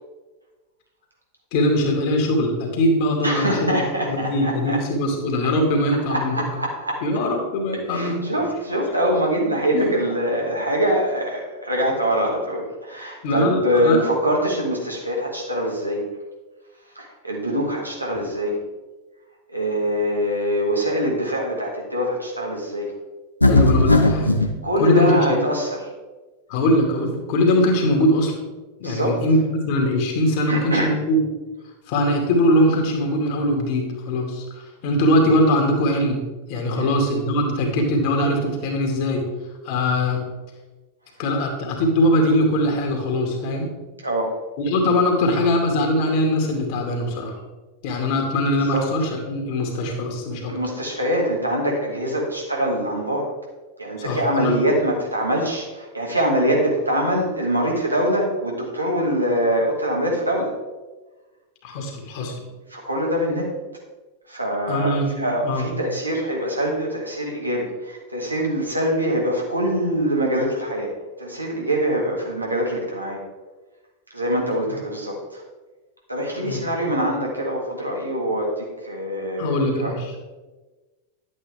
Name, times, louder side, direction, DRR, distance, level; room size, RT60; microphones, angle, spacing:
voice 1, 1.5-3.7 4.0-6.4 7.0-8.3 9.7-9.9 13.2-14.0 23.4-24.4 24.8-25.4 26.5-28.3 28.8-31.2 31.9-36.2 36.5-39.3 39.6-40.2 41.2-43.7 44.6-47.3 47.8-50.5 54.0-54.6 61.6-62.4 64.7-65.7 74.7-74.8 76.3-76.6 79.4-80.1, left 1 dB, 45° left, 2 dB, 2.4 m, -21 dB
voice 2, 3.2-4.8 6.1-7.0 7.9-16.0 17.0-18.6 19.5-22.9 24.6-25.8 28.8-29.2 30.5-30.9 36.7-36.9 44.0-44.4 48.7-48.8 50.5-53.3 53.8-60.5 62.7-63.5 64.3-70.9 71.2-73.2 74.1-75.4 76.1-79.9, equal, 85° right, -2 dB, 2.3 m, -24 dB
sound 1, 23.4-24.5, left 2 dB, 85° left, 0.9 m, -16 dB
11.0 x 8.6 x 3.6 m, 1.2 s
figure-of-eight pair, 90°, 0 cm